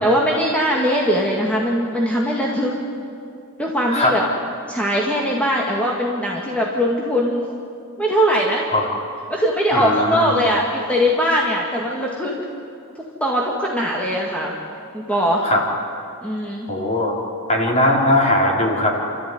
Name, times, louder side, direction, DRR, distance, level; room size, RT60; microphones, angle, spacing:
voice 1, 0.0-2.7 3.6-4.2 4.7-7.5 8.0-8.7 9.3-12.4 13.0-14.6 14.9-15.4 16.2-16.7, equal, 5° left, -3 dB, 2.1 m, -20 dB
voice 2, 9.7-10.5 15.4-15.6 16.7-17.1 17.5-19.0, left 1 dB, 30° left, -1 dB, 4.2 m, -19 dB
30.0 x 14.0 x 9.5 m, 2.5 s
head